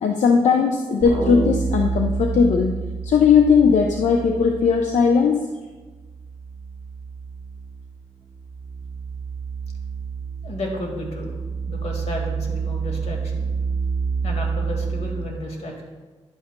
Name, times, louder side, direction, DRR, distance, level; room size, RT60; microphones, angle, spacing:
voice 1, 0.0-5.5, left 6 dB, 85° left, 3 dB, 0.5 m, -18 dB
sound 1, 1.0-5.4 5.7-15.2, right 5 dB, 20° right, 2.7 m, -29 dB
voice 2, 10.4-11.3 11.7-13.5 14.2-15.8, left 1 dB, 65° left, 1 dB, 1.8 m, -32 dB
10.5 x 8.6 x 2.2 m, 1.3 s
cardioid pair, 100°, 12 cm